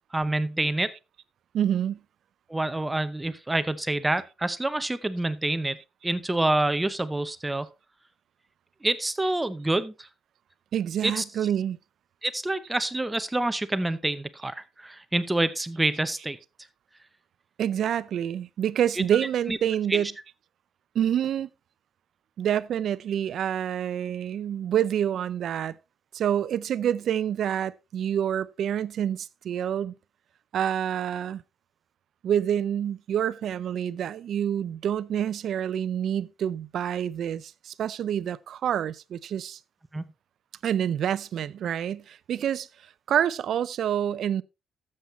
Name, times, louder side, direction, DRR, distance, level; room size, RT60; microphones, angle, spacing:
voice 1, 0.1-0.9 2.5-5.8 6.0-7.7 8.8-10.1 11.0-11.2 12.2-16.4 19.0-19.1 19.5-19.6 19.9-20.0 39.9-40.0, right 2 dB, 10° right, 0.7 m, -27 dB
voice 2, 1.5-2.0 10.7-11.8 17.6-20.1 20.9-21.5 22.4-25.8 26.1-29.9 30.5-31.4 32.2-39.6 40.6-42.7 43.1-44.4, right 9 dB, 70° right, 0.5 m, -27 dB
13.0 x 7.6 x 3.1 m
cardioid pair, 130°, 0 cm